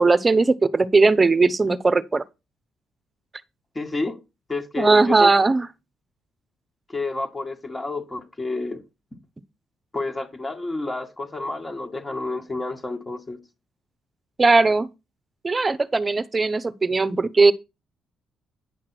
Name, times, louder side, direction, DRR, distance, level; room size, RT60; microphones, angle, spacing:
voice 1, 0.0-2.2 4.8-5.7 14.4-14.9 15.4-17.5, right 3 dB, 25° right, 1.0 m, -18 dB
voice 2, 3.8-4.2 4.5-5.3 6.9-8.8 9.9-13.4, left 2 dB, 20° left, 2.0 m, -30 dB
9.8 x 6.0 x 4.5 m
cardioid pair, 90°, 0 cm